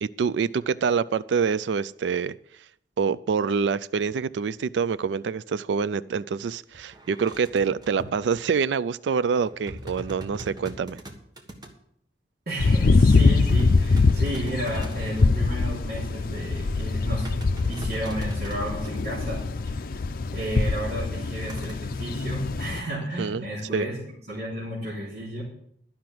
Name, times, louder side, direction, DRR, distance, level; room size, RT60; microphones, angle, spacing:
voice 1, 0.0-2.3 3.0-11.0 23.2-23.5 23.7-23.9, right 6 dB, 80° right, 0.4 m, -26 dB
sound 1, 6.4-6.5 6.7-8.4 9.3-11.7 12.5-15.4 16.9-19.4 21.5-21.7, right 1 dB, 25° right, 1.5 m, -41 dB
voice 2, 12.5-17.3 17.7-19.8 20.3-24.0 24.3-25.4, right 1 dB, 60° right, 3.2 m, -33 dB
sound 2, 12.6-22.8, left 3 dB, 55° left, 0.5 m, -23 dB
12.0 x 5.8 x 7.7 m
head